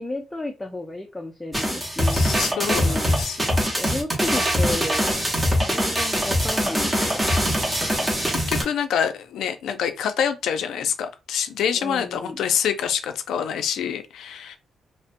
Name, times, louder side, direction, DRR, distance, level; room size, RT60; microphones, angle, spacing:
voice 1, 0.0-3.1 3.7-5.1 5.7-7.2 11.8-12.4, left 2 dB, 10° left, 0.4 m, -33 dB
sound 1, 1.5-8.6, equal, 15° right, 0.7 m, -23 dB
voice 2, 2.1-3.7 7.9-14.6, left 8 dB, 85° left, 0.4 m, -26 dB
2.5 x 2.0 x 2.5 m
cardioid pair, 140°, 0 cm